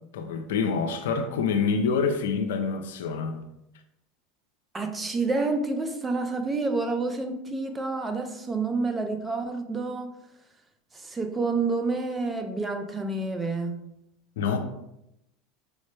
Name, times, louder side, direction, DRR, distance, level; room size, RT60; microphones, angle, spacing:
voice 1, 0.1-3.4 14.4-14.6, left 5 dB, 80° left, 0.4 m, -26 dB
voice 2, 4.7-10.2 10.9-13.9, right 3 dB, 20° right, 0.5 m, -29 dB
4.8 x 2.1 x 3.2 m
hypercardioid pair, 95°, 0 cm